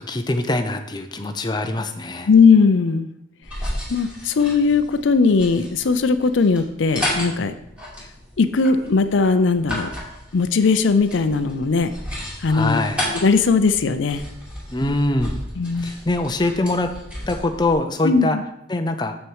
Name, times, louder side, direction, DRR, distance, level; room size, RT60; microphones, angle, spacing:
voice 1, 0.0-2.3 12.5-13.0 14.7-15.4 15.8-16.9 17.3-18.4 18.7-19.2, left 2 dB, 20° left, 6 dB, 0.6 m, -23 dB
voice 2, 2.3-3.1 3.9-7.5 8.4-9.9 10.3-11.9 12.4-12.8 13.2-14.2 15.6-15.9 18.0-18.4, left 4 dB, 75° left, 10 dB, 0.5 m, -18 dB
sound 1, 3.4-17.7, equal, 5° right, 2.8 m, -33 dB
7.3 x 6.2 x 4.7 m, 0.80 s
head